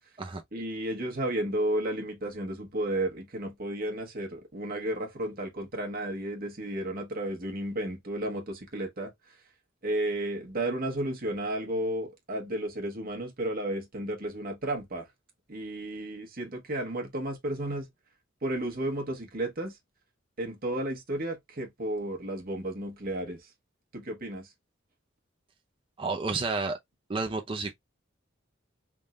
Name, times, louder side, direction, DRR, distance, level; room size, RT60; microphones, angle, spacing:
voice 1, 0.5-9.1 9.8-15.1 15.5-17.9 18.4-19.8 20.4-23.5 23.9-24.5, right 1 dB, 50° right, 1.2 m, -33 dB
voice 2, 26.0-26.8 27.1-27.7, right 3 dB, 25° right, 0.5 m, -30 dB
3.6 x 2.5 x 3.1 m
head